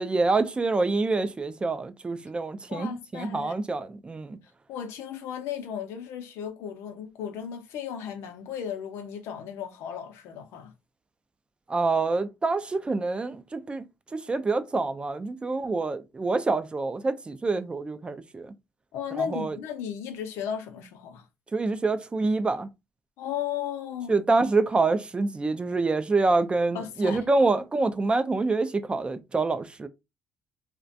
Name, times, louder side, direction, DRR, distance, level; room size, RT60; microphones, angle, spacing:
voice 1, 0.0-4.4 11.7-13.8 14.1-18.5 19.2-19.6 21.5-22.7 24.1-29.9, right 3 dB, 20° right, 0.3 m, -26 dB
voice 2, 2.7-3.6 4.7-10.7 18.9-21.3 23.2-24.2 26.7-27.2, left 8 dB, 80° left, 0.5 m, -35 dB
2.4 x 2.1 x 2.6 m
supercardioid pair, 85°, 5 cm